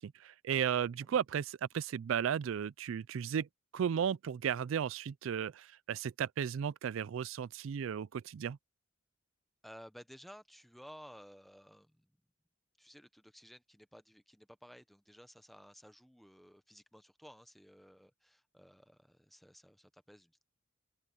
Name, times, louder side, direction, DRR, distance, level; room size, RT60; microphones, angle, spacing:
voice 1, 0.0-3.5 3.7-8.6, right 8 dB, 70° right, 0.3 m, -34 dB
voice 2, 9.6-12.1 12.8-20.4, equal, ahead, 0.9 m, -56 dB
open air
head